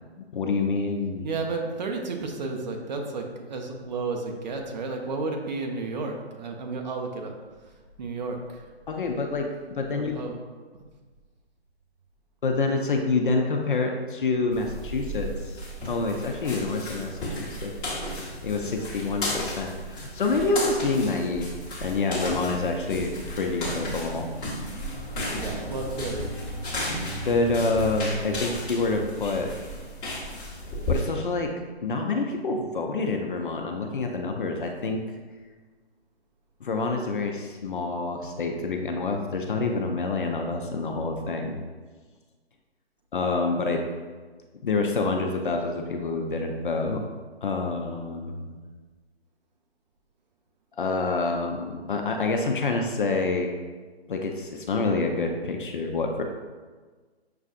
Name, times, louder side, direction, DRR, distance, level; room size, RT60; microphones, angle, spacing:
voice 1, 0.2-1.3 8.9-10.3 12.4-15.6 15.9-17.7 18.4-21.5 21.8-24.3 27.3-29.5 30.9-35.0 36.6-41.6 43.1-43.8 44.6-47.0 47.4-48.6 50.8-53.5 54.1-56.2, left 3 dB, 50° left, 2 dB, 0.5 m, -27 dB
voice 2, 1.2-3.2 3.5-7.3 8.0-8.6 9.9-10.4 25.4-26.3, right 3 dB, 45° right, 3 dB, 0.6 m, -32 dB
sound 1, 14.5-31.0, left 1 dB, 15° left, 1.0 m, -33 dB
6.5 x 2.4 x 2.4 m, 1.4 s
figure-of-eight pair, 150°, 32 cm